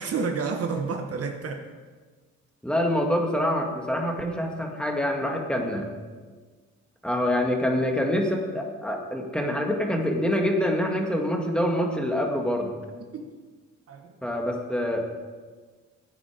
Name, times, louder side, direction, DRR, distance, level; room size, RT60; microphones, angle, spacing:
voice 1, 0.0-1.7 13.0-13.3 13.9-14.1, right 5 dB, 50° right, 5 dB, 1.4 m, -30 dB
voice 2, 2.6-5.9 7.0-12.7 14.2-15.1, left 1 dB, 5° left, 1 dB, 1.9 m, -26 dB
15.0 x 9.4 x 5.1 m, 1.4 s
cardioid pair, 90°, 30 cm